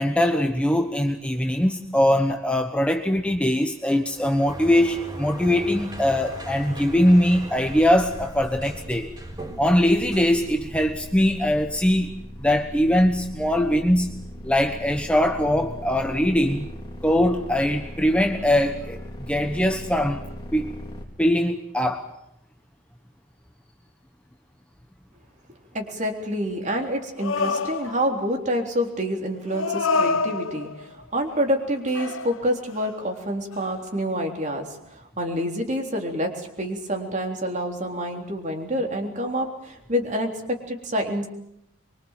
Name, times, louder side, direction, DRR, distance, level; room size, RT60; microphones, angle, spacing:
voice 1, 0.0-9.1 9.6-14.2 14.4-16.7 17.0-19.0 19.3-20.2 20.5-20.8 21.2-22.1, left 1 dB, 5° left, 1.2 m, -21 dB
Sliding door, 4.1-11.2, right 1 dB, 20° right, 4.4 m, -39 dB
sound 1, 7.5-21.0, equal, 20° left, 3.5 m, -39 dB
voice 2, 25.7-41.3, equal, 40° right, 3.7 m, -27 dB
sound 2, 27.2-28.3 29.5-30.8 31.3-31.7 31.9-32.9 33.5-33.6, left 4 dB, 85° left, 1.1 m, -27 dB
24.0 x 24.0 x 7.5 m
head